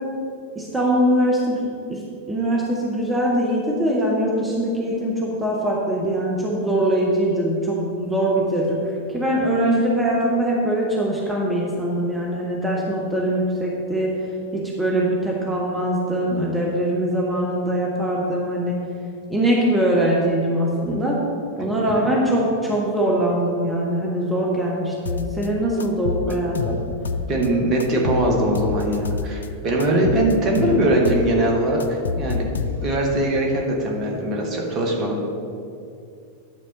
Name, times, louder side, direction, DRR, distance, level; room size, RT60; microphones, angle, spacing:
voice 1, 0.5-2.0 2.3-8.8 9.1-14.1 14.5-18.8 19.3-21.2 21.6-26.7, right 1 dB, 10° right, -3 dB, 1.3 m, -22 dB
sound 1, 25.1-25.5 25.8-27.5 27.8-29.5 29.8-31.3 31.6-33.1, left 5 dB, 70° left, 0.4 m, -27 dB
voice 2, 27.3-32.5 32.8-35.3, right 1 dB, 30° right, 0 dB, 1.6 m, -21 dB
10.5 x 4.2 x 6.8 m, 2.5 s
figure-of-eight pair, 90°, 0 cm